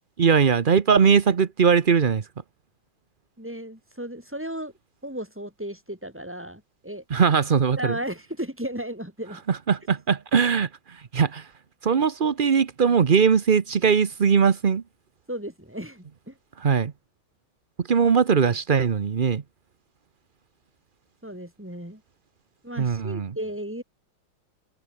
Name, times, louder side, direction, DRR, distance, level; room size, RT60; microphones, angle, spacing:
voice 1, 0.2-2.2 7.1-7.9 9.5-11.5 11.8-14.8 16.6-16.9 17.8-19.4 22.8-23.3, right 6 dB, 65° right, 0.5 m, -20 dB
voice 2, 3.4-4.7 5.0-7.0 7.8-9.4 15.3-16.4 21.2-22.0 22.6-23.8, right 1 dB, 5° right, 3.9 m, -35 dB
open air
omnidirectional pair, 2.4 m